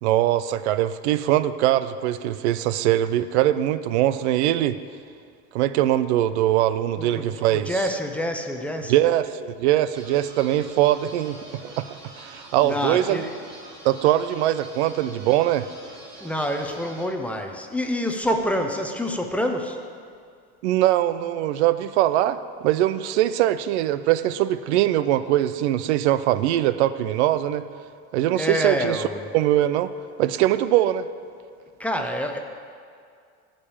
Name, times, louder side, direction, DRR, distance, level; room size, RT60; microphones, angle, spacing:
voice 1, 0.0-4.8 5.5-7.7 8.9-11.8 12.2-13.3 13.8-15.7 20.6-27.6 28.1-29.0 29.3-29.9 30.2-31.1, right 13 dB, 80° right, 14 dB, 0.6 m, -22 dB
voice 2, 7.0-8.9 12.6-13.3 16.2-19.8 28.3-29.3 31.8-32.4, equal, 5° left, 3 dB, 0.6 m, -27 dB
sound 1, 9.9-17.0, right 2 dB, 15° right, 3.8 m, -44 dB
15.0 x 5.2 x 8.7 m, 2.2 s
supercardioid pair, 150°, 34 cm